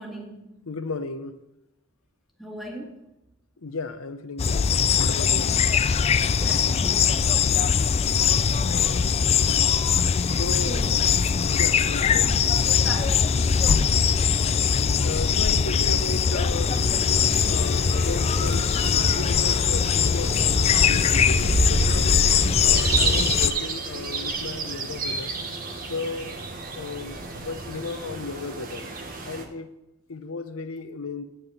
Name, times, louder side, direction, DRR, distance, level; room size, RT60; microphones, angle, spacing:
voice 1, 0.0-0.5 2.4-3.0 6.4-7.1 10.6-11.0 12.0-12.5 12.8-13.7, equal, ahead, 0 dB, 1.7 m, -39 dB
voice 2, 0.7-1.4 3.6-5.5 8.6-9.1 9.4-9.7 10.2-10.8 11.5-12.4 15.0-16.8 17.2-22.2 22.6-25.3 25.9-26.4 26.7-28.9 29.2-29.7 30.1-31.2, left 3 dB, 85° left, 10 dB, 0.8 m, -35 dB
sound 1, 4.4-23.5, left 6 dB, 30° left, 0.3 m, -21 dB
sound 2, 16.7-29.4, right 3 dB, 40° right, 1.2 m, -30 dB
9.1 x 5.8 x 8.0 m, 0.87 s
head